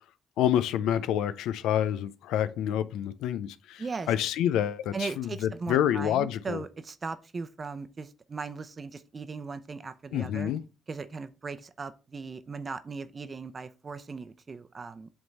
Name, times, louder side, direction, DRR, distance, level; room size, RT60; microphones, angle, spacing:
voice 1, 0.4-6.6 10.1-10.6, left 10 dB, 90° left, 0.5 m, -28 dB
voice 2, 3.8-4.1 4.9-10.5 10.9-15.1, right 4 dB, 35° right, 0.7 m, -38 dB
7.8 x 3.6 x 4.1 m
cardioid pair, 90°, 0 cm